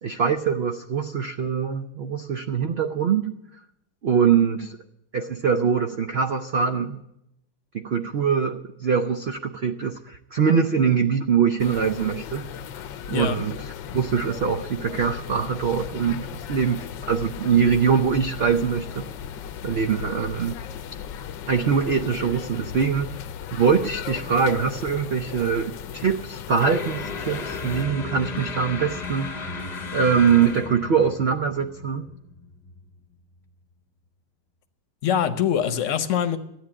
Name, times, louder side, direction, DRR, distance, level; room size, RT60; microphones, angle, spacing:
voice 1, 0.0-3.3 4.0-4.8 5.1-7.0 7.7-12.5 13.1-13.6 13.9-19.1 19.6-20.5 21.5-23.1 23.5-29.6 29.9-32.1, right 6 dB, 65° right, 0.6 m, -23 dB
sound 1, 11.6-27.8, left 9 dB, 85° left, 1.4 m, -36 dB
voice 2, 13.1-13.4 35.0-36.4, left 8 dB, 50° left, 1.1 m, -23 dB
sound 2, 26.6-33.0, left 3 dB, 30° left, 0.9 m, -35 dB
13.5 x 9.4 x 8.6 m
omnidirectional pair, 1.9 m